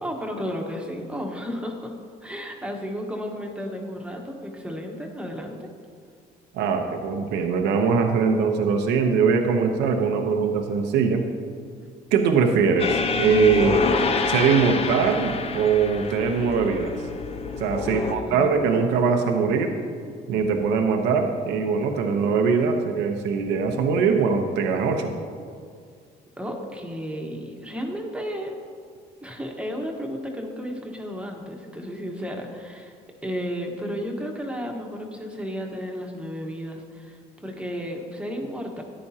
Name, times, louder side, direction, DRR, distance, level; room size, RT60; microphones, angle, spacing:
voice 1, 0.0-5.7 17.8-18.7 26.4-28.6 29.2-32.9 33.2-38.8, equal, 5° right, 1 dB, 1.3 m, -33 dB
voice 2, 6.5-11.2 12.1-13.9 14.3-16.9 17.6-19.7 20.3-25.1, right 5 dB, 85° right, 4 dB, 0.9 m, -22 dB
sound 1, 12.8-18.2, left 4 dB, 35° left, 0.7 m, -27 dB
13.5 x 10.0 x 2.8 m, 2.1 s
cardioid pair, 110°, 17 cm